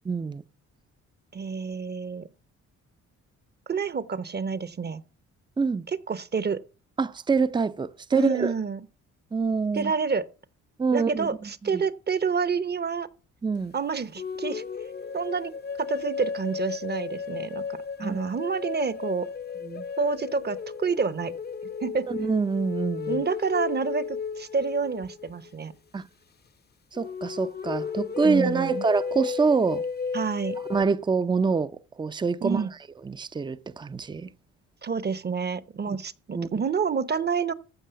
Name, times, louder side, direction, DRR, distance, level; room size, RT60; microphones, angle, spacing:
voice 1, 0.1-0.4 5.6-5.9 7.0-8.5 9.3-9.9 10.8-11.3 11.7-11.8 13.4-13.7 18.0-18.2 19.6-19.8 22.1-23.2 25.9-26.0 26.9-29.8 30.7-32.6 33.1-34.3 35.9-36.0 36.3-36.5, right 4 dB, 15° right, 0.5 m, -25 dB
voice 2, 1.3-2.3 3.7-5.0 5.9-6.6 8.1-8.8 9.7-10.3 10.9-13.1 13.7-14.6 15.1-15.5 15.8-19.3 20.0-21.3 21.8-22.1 23.1-25.7 28.2-28.9 30.1-30.6 32.4-32.7 34.8-37.5, right 5 dB, 35° right, 0.9 m, -28 dB
sound 1, 14.2-25.5 26.9-30.8, left 6 dB, 35° left, 0.8 m, -34 dB
14.5 x 5.4 x 6.9 m
cardioid pair, 90°, 30 cm